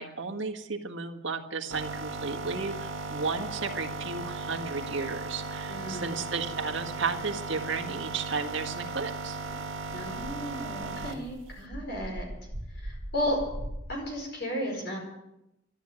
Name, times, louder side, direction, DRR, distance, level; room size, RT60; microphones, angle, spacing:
voice 1, 0.0-9.4, right 4 dB, 70° right, 5 dB, 1.6 m, -34 dB
sound 1, 1.7-11.3, right 3 dB, 85° right, 1.9 m, -37 dB
voice 2, 5.7-6.1 9.9-12.3 12.7-13.4 13.9-15.0, equal, 55° left, 0 dB, 4.9 m, -34 dB
sound 2, 10.2-14.0, right 1 dB, 45° right, 1.4 m, -41 dB
13.0 x 12.0 x 8.8 m, 0.87 s
head